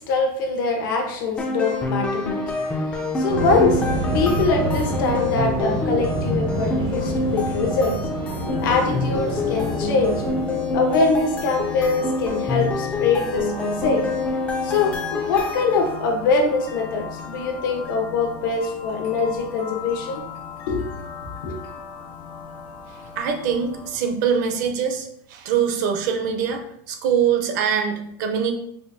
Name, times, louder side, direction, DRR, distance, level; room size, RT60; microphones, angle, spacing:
voice 1, 0.1-2.4 2.7-3.8 4.1-8.0 8.6-10.2 10.7-14.0 14.6-20.2 20.7-20.9 21.4-21.6, left 4 dB, 70° left, 2 dB, 0.9 m, -23 dB
sound 1, 1.4-16.1, left 2 dB, 10° left, 0.3 m, -27 dB
Waves surf, 3.3-10.4, right 2 dB, 90° right, 1.1 m, -27 dB
sound 2, 8.4-24.0, left 5 dB, 40° left, 0.7 m, -35 dB
voice 2, 23.2-26.6 26.9-28.5, right 7 dB, 60° right, 5 dB, 0.6 m, -23 dB
4.8 x 2.3 x 2.6 m, 0.69 s
supercardioid pair, 165°, 11 cm